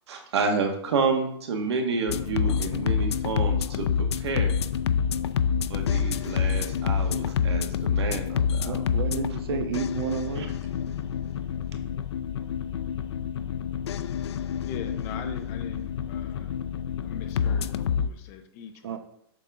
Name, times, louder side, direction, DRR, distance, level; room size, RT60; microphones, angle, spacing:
voice 1, 0.1-4.5 5.7-8.8 10.4-10.5, right 4 dB, 80° right, 3 dB, 1.7 m, -29 dB
sound 1, 2.1-18.1, left 7 dB, 80° left, 0.5 m, -27 dB
voice 2, 8.6-10.5 18.8-19.0, right 6 dB, 65° right, 8 dB, 1.0 m, -31 dB
voice 3, 14.6-16.5 17.0-19.0, left 7 dB, 20° left, 6 dB, 0.4 m, -41 dB
7.8 x 5.8 x 3.6 m, 0.70 s
supercardioid pair, 180°, 14 cm